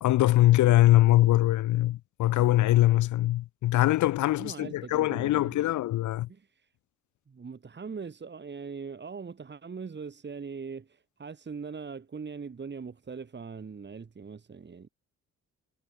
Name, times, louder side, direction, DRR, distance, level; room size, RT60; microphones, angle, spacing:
voice 1, 0.0-6.3, left 15 dB, 75° left, 0.8 m, -22 dB
voice 2, 4.4-5.8 6.3-6.7 7.3-14.9, right 5 dB, 35° right, 6.0 m, -41 dB
cardioid pair, 90°, 30 cm